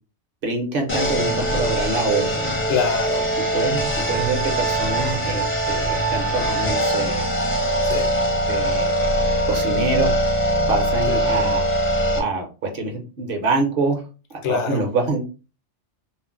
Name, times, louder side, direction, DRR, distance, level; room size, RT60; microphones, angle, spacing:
voice 1, 0.4-2.5 3.5-7.3 8.5-9.1 9.5-10.1 10.7-11.6 12.1-14.0 14.5-15.3, right 3 dB, 55° right, 0.8 m, -25 dB
sound 1, 0.9-12.2, right 1 dB, 15° left, 0.4 m, -22 dB
voice 2, 2.7-3.4 7.8-8.2 11.1-11.3 14.4-14.9, left 7 dB, 80° left, 0.9 m, -25 dB
2.4 x 2.0 x 3.6 m
omnidirectional pair, 1.2 m